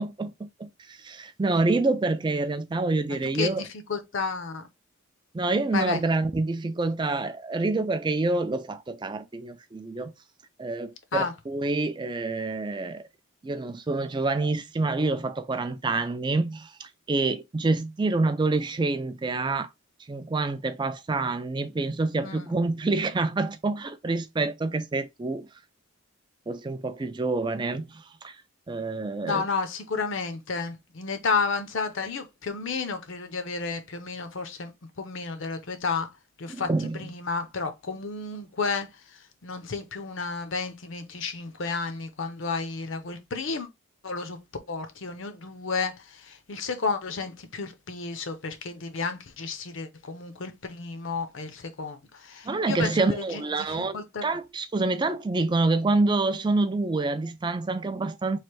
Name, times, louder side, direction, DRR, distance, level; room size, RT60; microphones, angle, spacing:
voice 1, 0.0-3.6 5.3-10.1 10.6-13.0 13.4-19.7 20.1-25.5 26.5-28.4 28.7-29.4 36.5-37.0 52.5-58.4, right 3 dB, 20° right, 0.3 m, -27 dB
voice 2, 3.2-4.7 5.7-6.0 11.1-11.3 22.2-22.5 29.2-34.7 35.0-36.1 36.4-43.7 44.0-44.4 44.7-54.3, left 4 dB, 60° left, 0.6 m, -32 dB
3.2 x 2.5 x 4.4 m
head